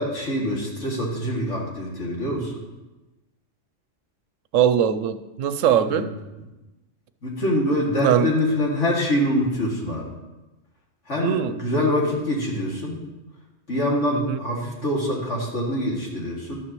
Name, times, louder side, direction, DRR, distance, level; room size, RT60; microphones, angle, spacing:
voice 1, 0.0-2.5 5.8-6.0 7.2-10.1 11.1-13.0 13.7-16.6, left 1 dB, 65° left, -3 dB, 2.6 m, -25 dB
voice 2, 4.5-6.1 8.0-8.3 11.2-11.5 14.1-14.4, right 9 dB, 90° right, 12 dB, 1.0 m, -21 dB
12.0 x 9.5 x 3.0 m, 1.1 s
omnidirectional pair, 1.3 m